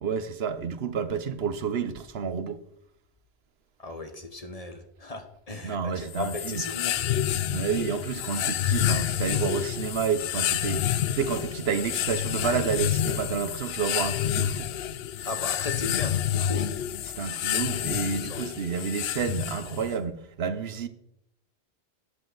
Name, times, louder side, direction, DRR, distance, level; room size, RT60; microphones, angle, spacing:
voice 1, 0.0-2.6 5.6-6.6 7.5-14.7 15.8-16.0 17.0-20.9, right 6 dB, 70° right, 1.0 m, -30 dB
voice 2, 3.8-7.0 15.2-16.6 18.3-18.4, left 3 dB, 35° left, 1.0 m, -36 dB
sound 1, 6.1-20.0, left 10 dB, 70° left, 0.8 m, -29 dB
12.5 x 8.3 x 3.9 m
omnidirectional pair, 1.1 m